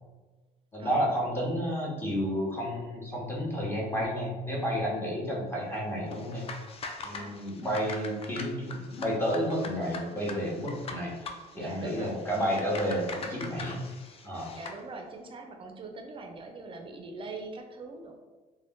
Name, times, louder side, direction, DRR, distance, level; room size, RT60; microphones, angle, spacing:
voice 1, 0.7-6.5 7.0-13.8 14.2-14.5, equal, 15° left, -4 dB, 0.9 m, -31 dB
sound 1, 6.1-14.8, left 4 dB, 35° left, 0.4 m, -43 dB
voice 2, 11.5-12.2 14.5-18.2, right 3 dB, 30° right, 3 dB, 0.4 m, -42 dB
2.4 x 2.2 x 3.5 m, 1.3 s
cardioid pair, 110°, 17 cm